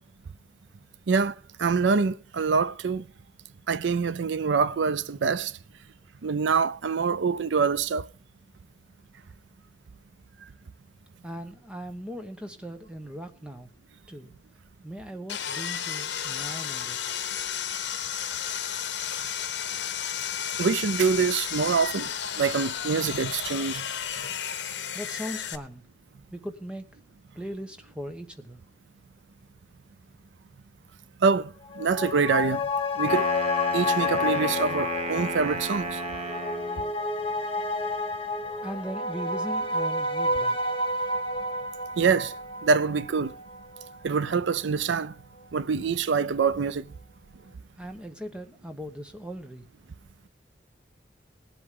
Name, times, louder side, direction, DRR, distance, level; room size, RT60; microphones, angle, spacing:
voice 1, 1.1-3.0 3.7-5.5 6.2-8.1 20.6-22.1 22.4-23.8 31.2-32.6 33.0-33.3 33.7-36.0 42.0-42.3 42.6-43.3 44.0-45.1 45.5-46.9, right 5 dB, 80° right, 0.5 m, -25 dB
voice 2, 11.2-13.7 14.1-14.3 14.8-17.0 24.9-25.9 26.3-26.9 27.3-28.6 38.6-40.6 41.0-41.2 47.8-49.7, equal, 5° right, 1.0 m, -39 dB
Sawing, 15.3-25.6, left 9 dB, 75° left, 1.0 m, -32 dB
sound 1, 31.6-44.5 44.8-44.9, left 2 dB, 30° left, 1.3 m, -30 dB
Wind instrument woodwind instrument, 32.9-36.9, right 2 dB, 35° right, 1.1 m, -33 dB
19.5 x 7.9 x 3.7 m
head